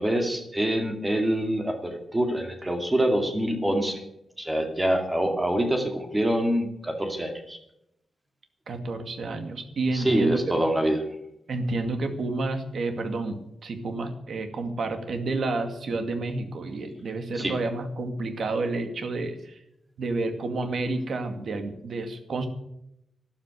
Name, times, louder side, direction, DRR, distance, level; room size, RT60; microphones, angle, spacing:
voice 1, 0.0-4.0 4.4-7.6 9.9-11.0 17.4-17.5, right 1 dB, 15° right, 4 dB, 2.3 m, -25 dB
voice 2, 8.7-10.4 11.5-19.6 20.0-22.5, right 3 dB, 60° right, 7 dB, 2.2 m, -30 dB
13.0 x 11.5 x 8.2 m, 0.80 s
wide cardioid pair, 150°, 0 cm